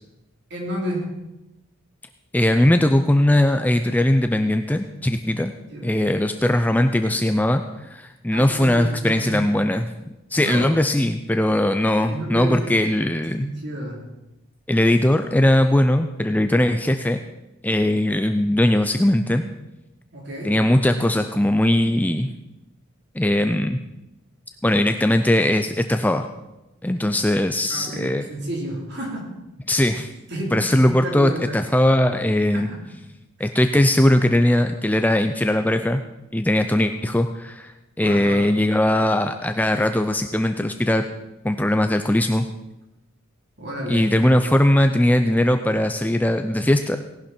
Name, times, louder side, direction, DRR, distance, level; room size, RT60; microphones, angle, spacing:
voice 1, 0.5-1.1 5.7-6.0 8.3-9.5 10.4-10.7 12.1-12.7 13.3-14.0 20.1-20.6 27.7-29.3 29.7-29.8 30.3-31.5 32.5-32.8 33.4-33.5 38.0-38.5 43.6-44.1, right 1 dB, 50° right, -1 dB, 3.7 m, -31 dB
voice 2, 2.3-5.5 5.8-9.8 10.3-13.5 14.7-17.2 17.6-19.4 20.4-22.3 23.1-23.8 24.6-26.3 26.8-28.2 29.7-30.1 30.5-32.7 33.4-36.0 36.3-41.0 41.4-42.5 43.9-47.0, left 1 dB, 5° left, 7 dB, 0.4 m, -20 dB
18.0 x 11.5 x 4.4 m, 0.96 s
head